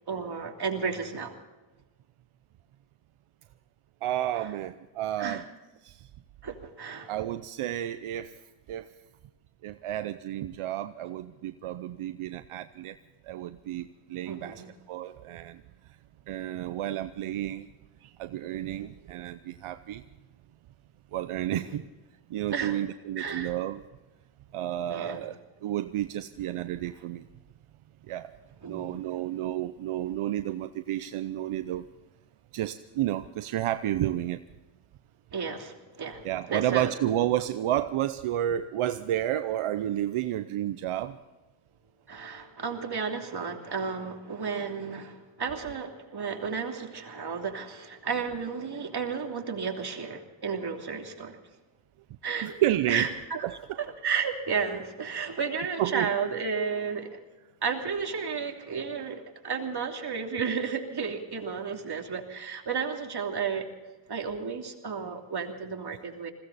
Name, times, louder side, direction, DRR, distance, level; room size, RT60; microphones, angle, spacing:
voice 1, 0.1-1.3 4.4-4.5 5.2-5.4 6.4-7.1 14.3-14.7 21.5-21.7 22.5-22.8 23.2-23.5 24.9-25.2 28.6-29.1 35.3-36.9 42.1-51.4 52.2-52.5 52.9-53.4 53.8-57.2 57.6-63.7 64.1-66.3, right 5 dB, 50° right, 2 dB, 3.1 m, -33 dB
voice 2, 4.0-5.4 5.8-6.1 7.1-8.4 8.7-8.9 9.6-13.0 13.2-14.6 14.9-15.6 16.3-17.7 18.0-20.0 21.1-21.8 22.3-23.8 24.5-27.3 28.1-28.3 28.6-31.8 32.5-34.4 36.2-41.2 52.4-53.1 53.4-53.6 55.8-56.1, right 12 dB, 85° right, 11 dB, 0.8 m, -31 dB
21.0 x 16.5 x 4.1 m, 1.2 s
cardioid pair, 65°, 49 cm